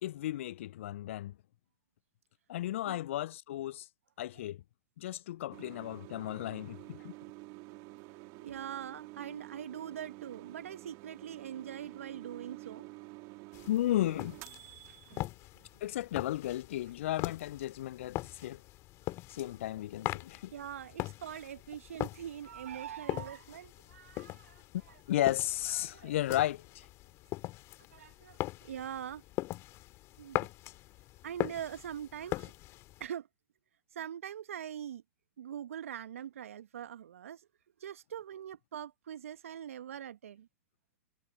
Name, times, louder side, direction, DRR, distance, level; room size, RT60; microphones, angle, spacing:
voice 1, 0.0-1.3 2.5-3.9 4.2-4.6 5.0-7.1 13.7-14.4 15.8-18.6 19.3-20.5 25.1-26.9, left 13 dB, 60° left, 0.4 m, -34 dB
sound 1, 5.5-15.3, right 27 dB, 45° right, 3.3 m, -49 dB
voice 2, 8.4-12.9 14.6-15.3 15.6-15.7 20.5-24.6 25.7-26.1 27.9-28.4 28.6-29.2 30.2-30.5 31.2-32.5 33.0-33.3 33.9-35.0 35.4-37.5 37.8-40.5, right 9 dB, 70° right, 1.5 m, -43 dB
sound 2, 13.5-33.1, left 18 dB, 40° left, 2.5 m, -41 dB
figure-of-eight pair, 100°, 8 cm